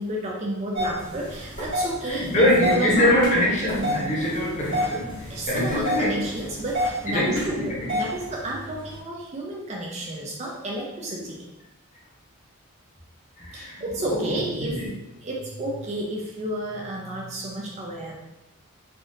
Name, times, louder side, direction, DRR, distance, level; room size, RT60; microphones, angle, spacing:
voice 1, 0.0-2.5 2.7-3.1 5.3-11.5 13.5-14.8 15.2-18.1, right 1 dB, 30° right, -2 dB, 0.4 m, -31 dB
sound 1, 0.8-9.0, equal, 55° right, 1.4 m, -31 dB
voice 2, 2.0-6.2 7.1-8.0 13.4-14.9, left 1 dB, 30° left, -5 dB, 0.8 m, -24 dB
3.4 x 2.4 x 2.6 m, 0.90 s
head